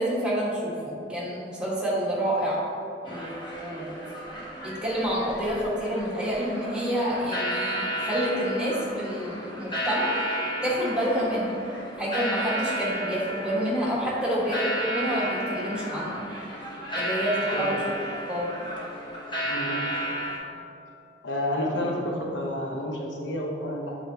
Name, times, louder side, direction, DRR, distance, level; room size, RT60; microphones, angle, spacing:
voice 1, 0.0-2.6 3.0-4.1 4.3-10.1 10.6-11.6 12.0-16.2 16.9-17.8 18.3-18.5, equal, 5° right, -7 dB, 1.3 m, -28 dB
sound 1, 3.0-20.4, right 1 dB, 25° left, 1.2 m, -33 dB
voice 2, 17.4-17.8 19.4-19.9 21.2-24.0, left 1 dB, 85° left, -1 dB, 0.9 m, -30 dB
7.7 x 4.7 x 2.7 m, 2.7 s
head